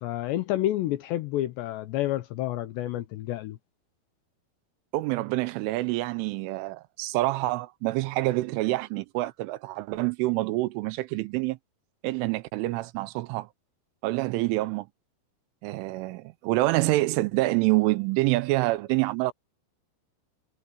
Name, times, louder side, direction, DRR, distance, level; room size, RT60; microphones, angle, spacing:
voice 1, 0.0-3.6, left 14 dB, 75° left, 2.7 m, -29 dB
voice 2, 4.9-11.6 12.0-13.5 14.0-14.9 15.6-19.3, right 19 dB, 80° right, 3.1 m, -27 dB
omnidirectional pair, 5.8 m